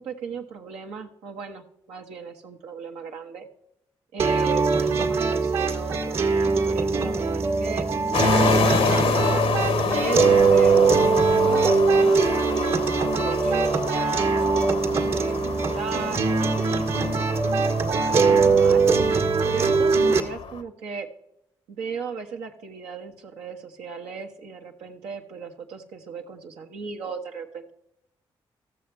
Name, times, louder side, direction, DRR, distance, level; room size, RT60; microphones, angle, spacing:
voice 1, 0.0-3.5 4.1-7.9 8.4-14.3 14.8-18.9 19.5-21.1 21.7-27.7, right 5 dB, 90° right, 2 dB, 1.1 m, -37 dB
sound 1, 4.2-20.2, right 4 dB, 75° right, 1.7 m, -21 dB
sound 2, 8.1-20.6, left 6 dB, 75° left, 0.9 m, -28 dB
14.5 x 7.1 x 3.2 m, 0.80 s
supercardioid pair, 50°, 10 cm